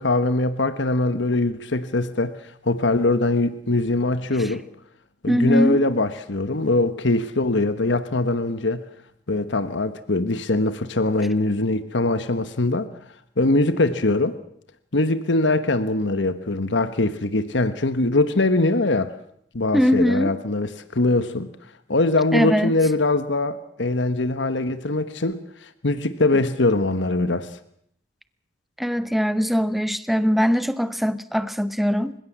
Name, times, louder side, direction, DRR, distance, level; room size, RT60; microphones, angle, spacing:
voice 1, 0.0-2.4 2.6-4.6 5.2-8.8 9.3-12.9 13.4-14.4 14.9-19.1 19.5-21.5 21.9-27.5, left 2 dB, 75° left, 12 dB, 1.3 m, -22 dB
voice 2, 5.3-5.8 19.7-20.4 22.3-22.7 28.8-32.1, equal, ahead, 13 dB, 0.9 m, -21 dB
28.0 x 16.0 x 7.4 m, 0.72 s
head